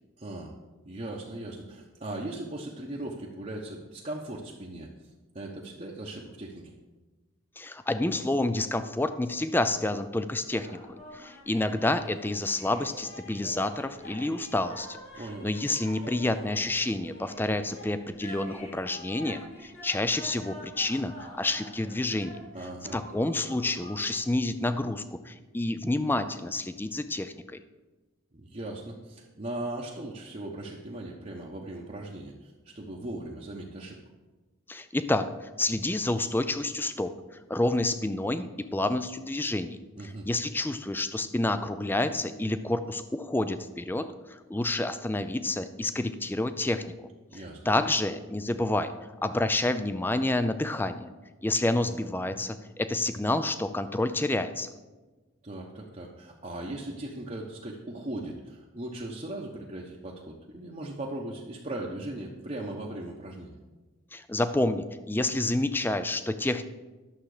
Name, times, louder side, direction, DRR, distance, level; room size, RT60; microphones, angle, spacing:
voice 1, 0.2-0.5 0.8-4.9 5.3-6.7 15.1-15.5 22.5-23.0 28.3-34.0 40.0-40.3 47.3-47.6 55.4-63.6, right 1 dB, 35° right, -3 dB, 0.9 m, -38 dB
voice 2, 7.6-22.4 22.9-27.3 34.7-37.1 37.5-39.8 40.0-46.9 47.3-51.1 51.4-54.7 64.1-66.6, left 2 dB, 10° left, 11 dB, 0.4 m, -29 dB
sound 1, 10.5-24.1, left 1 dB, 65° left, 3.8 m, -47 dB
11.5 x 7.2 x 4.9 m, 1.2 s
head